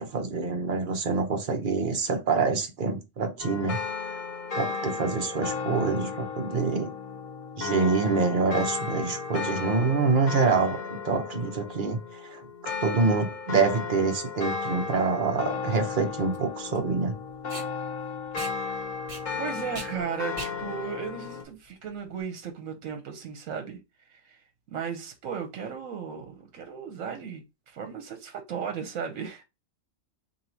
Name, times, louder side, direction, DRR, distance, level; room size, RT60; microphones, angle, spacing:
voice 1, 0.0-3.8 4.5-6.9 7.6-17.2, right 4 dB, 45° right, 0.8 m, -26 dB
sound 1, 3.4-21.4, left 5 dB, 45° left, 0.6 m, -34 dB
Packing tape duct tape, 14.7-22.2, right 1 dB, 25° right, 1.1 m, -44 dB
voice 2, 19.4-23.8 24.1-24.4 24.7-29.4, right 7 dB, 80° right, 1.1 m, -36 dB
2.8 x 2.7 x 4.3 m
omnidirectional pair, 1.4 m